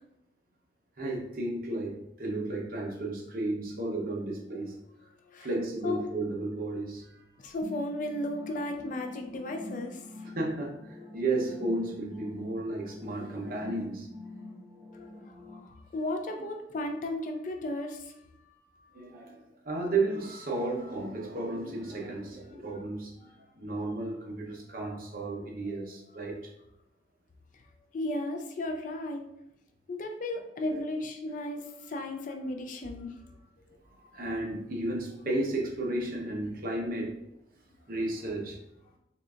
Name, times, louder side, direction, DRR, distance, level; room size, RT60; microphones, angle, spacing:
voice 1, 1.0-4.8 5.4-7.2 10.2-14.1 18.9-26.4 30.7-30.8 34.0-37.2 37.9-38.6, right 2 dB, 50° right, 0 dB, 0.7 m, -33 dB
voice 2, 7.4-10.4 14.9-19.1 23.2-23.3 25.6-25.8 27.5-27.7 27.9-29.3 29.9-33.2 34.1-34.2, left 1 dB, 45° left, 4 dB, 0.4 m, -35 dB
sound 1, 7.6-15.6, left 2 dB, 15° right, 0.4 m, -45 dB
3.8 x 3.3 x 2.4 m, 0.82 s
head